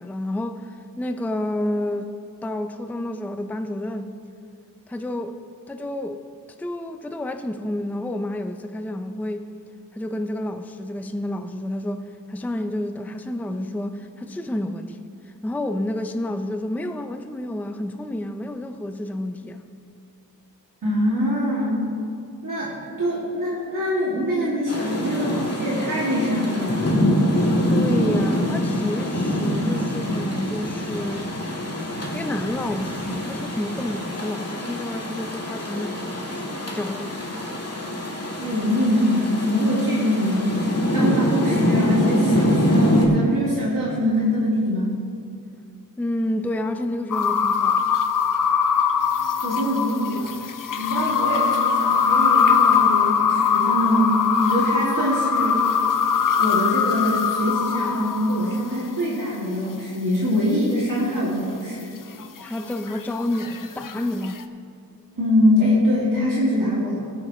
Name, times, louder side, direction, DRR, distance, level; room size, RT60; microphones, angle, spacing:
voice 1, 0.0-2.1 2.4-4.1 4.9-5.4 5.7-6.3 6.6-9.5 9.9-15.0 15.3-19.6 27.7-31.4 32.1-37.4 46.0-48.0 62.4-64.4, left 1 dB, 5° left, 0.4 m, -29 dB
voice 2, 20.8-21.8 22.4-27.0 38.3-45.0 49.4-50.4 50.8-55.6 56.4-61.9 65.2-67.1, equal, 65° right, 2.3 m, -23 dB
Rain, 24.7-43.1, equal, 45° left, 2.0 m, -24 dB
sound 1, 47.1-58.8 62.2-64.4, left 6 dB, 65° left, 0.6 m, -22 dB
17.0 x 9.7 x 3.1 m
wide cardioid pair, 85°, 35 cm